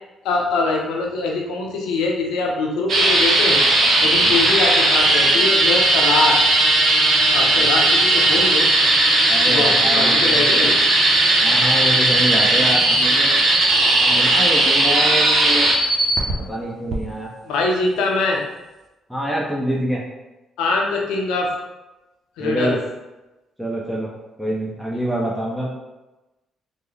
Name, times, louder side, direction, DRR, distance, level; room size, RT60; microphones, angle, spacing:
voice 1, 0.2-3.6 4.0-6.4 7.3-8.7 9.4-10.7 17.4-18.4 20.6-21.5 22.4-22.8, left 3 dB, 80° left, 0 dB, 0.6 m, -23 dB
sound 1, 2.9-16.3 16.9-17.0, right 2 dB, 65° right, 0.6 m, -16 dB
voice 2, 8.2-8.5 9.3-10.7 11.4-13.3 13.9-15.7 16.4-17.3 19.1-20.0 22.4-22.8 23.6-24.1 24.4-25.7, equal, ahead, -4 dB, 0.6 m, -26 dB
3.4 x 2.1 x 3.1 m, 1.0 s
hypercardioid pair, 50°, 0 cm